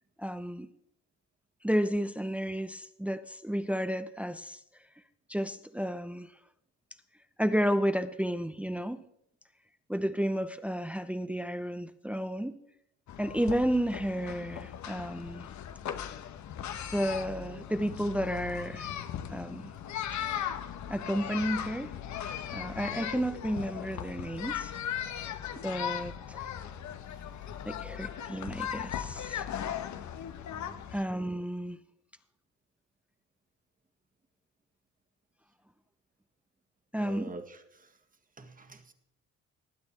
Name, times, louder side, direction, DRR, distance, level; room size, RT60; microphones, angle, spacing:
voice 1, 0.2-0.7 1.6-4.6 5.3-6.3 7.4-9.1 9.9-12.6 13.2-15.5 16.9-18.9 19.3-19.7 20.9-21.9 22.5-24.7 25.6-26.5 27.6-29.5 30.9-31.8 36.9-37.3, equal, 5° right, 11 dB, 0.7 m, -32 dB
sound 1, 13.1-31.0, left 9 dB, 70° left, 1.1 m, -38 dB
voice 2, 30.5-30.8 37.0-37.9 38.4-38.9, right 3 dB, 30° right, 6 dB, 1.8 m, -45 dB
19.0 x 8.8 x 4.3 m, 0.78 s
cardioid pair, 90°, 30 cm